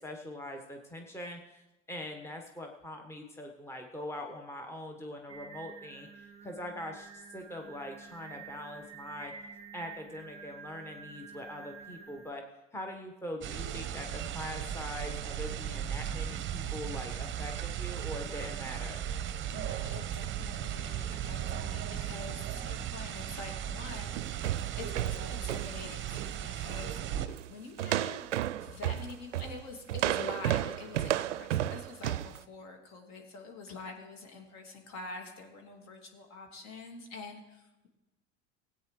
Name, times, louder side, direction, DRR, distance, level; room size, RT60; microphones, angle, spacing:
voice 1, 0.0-9.3 9.7-12.4 12.7-19.0, left 1 dB, 5° left, 3 dB, 1.3 m, -42 dB
Singing, 5.3-12.3, right 6 dB, 15° right, 2.6 m, -49 dB
sound 1, 13.4-27.3, right 10 dB, 30° right, 0.9 m, -36 dB
voice 2, 19.5-24.5 24.8-28.3 28.6-37.9, left 3 dB, 45° left, 2 dB, 2.6 m, -46 dB
sound 2, 24.1-26.4 26.7-26.9 27.3-27.5 27.8-32.4, right 12 dB, 70° right, 0.5 m, -33 dB
20.5 x 8.8 x 3.3 m, 0.98 s
figure-of-eight pair, 70°, 37 cm